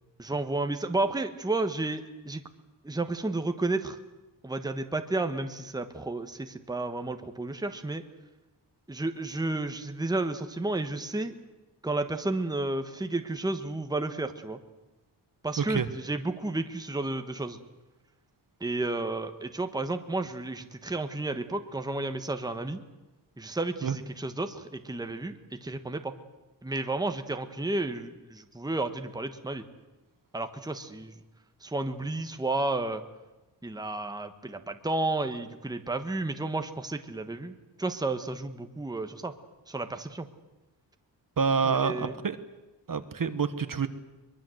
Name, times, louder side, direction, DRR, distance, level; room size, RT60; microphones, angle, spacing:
voice 1, 0.2-2.4 2.8-4.0 4.4-8.0 8.9-11.3 11.8-14.6 15.4-17.6 18.6-22.8 23.4-26.1 26.6-29.6 30.3-31.2 31.6-33.0 33.6-37.5 37.8-39.3 39.7-40.3 41.6-42.1, right 2 dB, 10° right, 7 dB, 1.2 m, -32 dB
voice 2, 15.6-15.9 23.8-24.0 41.4-42.4 42.9-43.9, right 5 dB, 45° right, 11 dB, 1.2 m, -27 dB
23.0 x 22.5 x 7.8 m, 1.1 s
wide cardioid pair, 165°, 44 cm